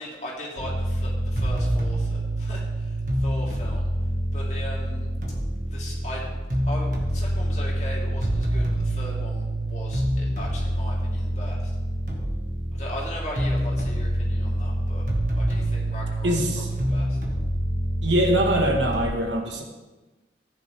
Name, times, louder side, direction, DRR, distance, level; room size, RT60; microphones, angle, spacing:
voice 1, 0.0-3.9 4.3-5.1 5.6-6.3 6.6-11.7 12.7-15.0 15.3-17.2, equal, 40° left, -4 dB, 3.2 m, -38 dB
sound 1, 0.6-19.0, right 1 dB, 45° right, 1.9 m, -26 dB
voice 2, 16.2-16.7 18.0-19.6, right 1 dB, 85° right, 2 dB, 1.9 m, -23 dB
14.5 x 9.4 x 3.8 m, 1.1 s
head